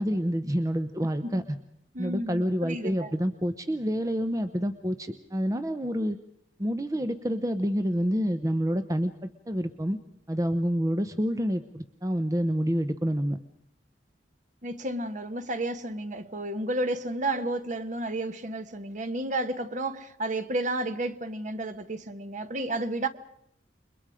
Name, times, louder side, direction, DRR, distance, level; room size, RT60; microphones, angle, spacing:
voice 1, 0.0-1.4 2.0-6.2 6.6-10.0 10.3-13.4, equal, 20° right, 0.8 m, -28 dB
voice 2, 1.9-3.1 14.6-23.1, right 2 dB, 45° right, 1.3 m, -32 dB
29.0 x 22.5 x 5.0 m
head